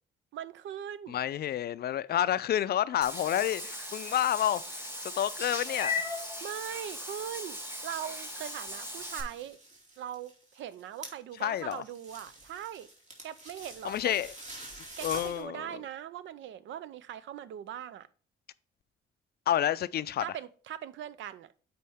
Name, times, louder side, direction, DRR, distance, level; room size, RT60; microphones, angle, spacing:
voice 1, 0.3-1.2 6.4-9.6 10.0-12.9 13.2-14.2 15.0-18.1 20.2-21.5, right 10 dB, 75° right, 0.5 m, -41 dB
voice 2, 1.1-6.0 11.4-11.8 13.8-14.3 15.0-15.7 19.5-20.2, left 11 dB, 55° left, 0.4 m, -29 dB
Meow / Water / Bathtub (filling or washing), 3.0-9.2, left 2 dB, 10° right, 1.8 m, -38 dB
sound 1, 8.6-15.4, right 2 dB, 35° right, 2.6 m, -48 dB
8.4 x 4.3 x 3.5 m
cardioid pair, 90°, 20 cm